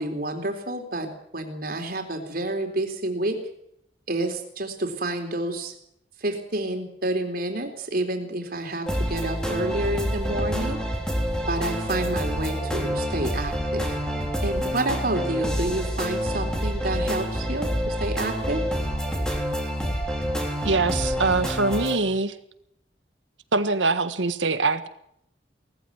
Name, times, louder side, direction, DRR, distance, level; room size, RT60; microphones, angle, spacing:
voice 1, 0.0-3.4 4.1-5.7 6.2-10.8 11.5-13.9 14.4-18.6, right 1 dB, 50° right, 4 dB, 3.8 m, -29 dB
sound 1, 8.9-22.0, equal, 5° left, 3.6 m, -27 dB
voice 2, 20.6-22.3 23.5-24.9, right 3 dB, 85° right, 11 dB, 1.6 m, -23 dB
19.0 x 15.0 x 9.5 m, 0.73 s
head